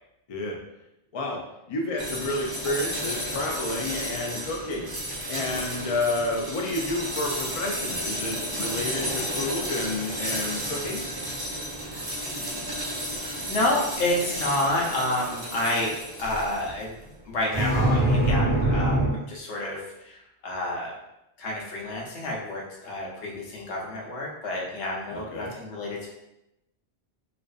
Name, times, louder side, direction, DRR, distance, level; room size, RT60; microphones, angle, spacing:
voice 1, 1.7-4.9 5.3-11.0 25.1-25.5, left 2 dB, 65° left, 0 dB, 0.3 m, -30 dB
sound 1, 2.0-16.8 17.5-19.1, right 1 dB, 40° right, 0.3 m, -29 dB
voice 2, 13.2-17.0 17.2-21.0 21.4-26.1, left 1 dB, 85° left, -2 dB, 1.0 m, -29 dB
2.4 x 2.4 x 2.2 m, 0.88 s
omnidirectional pair, 1.1 m